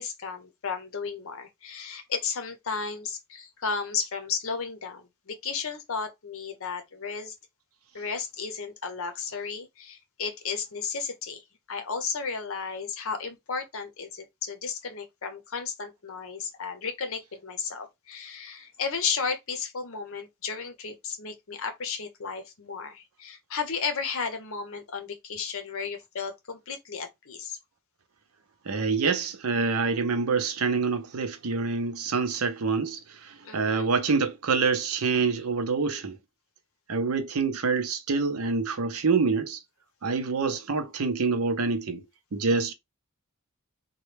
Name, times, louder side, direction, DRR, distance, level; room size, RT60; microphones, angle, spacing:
voice 1, 0.0-7.4 7.9-27.6 33.4-33.9, left 5 dB, 65° left, 0.7 m, -34 dB
voice 2, 28.6-36.2 36.9-39.6 40.0-42.1 42.3-42.7, right 4 dB, 75° right, 0.6 m, -26 dB
3.1 x 2.2 x 3.2 m
head